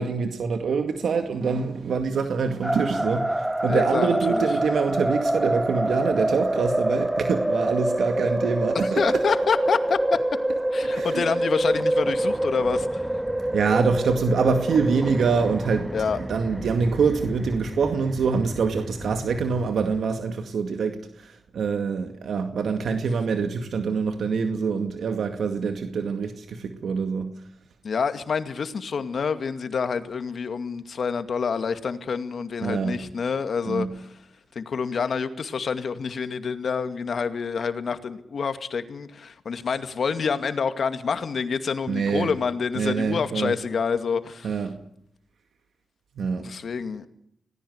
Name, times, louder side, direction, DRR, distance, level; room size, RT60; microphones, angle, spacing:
voice 1, 0.0-9.0 10.8-11.2 13.5-15.9 16.2-27.3 32.6-33.0 33.7-33.9 41.9-42.3 42.8-43.5 44.4-44.8 46.2-46.4, right 5 dB, 80° right, 2.1 m, -25 dB
sound 1, 2.6-20.0, right 1 dB, 15° right, 1.7 m, -27 dB
voice 2, 3.7-4.5 8.7-10.2 10.7-13.1 15.9-16.2 27.8-34.2 34.6-44.7 46.4-47.1, left 5 dB, 70° left, 2.3 m, -27 dB
26.5 x 19.0 x 8.1 m
cardioid pair, 65°, 0 cm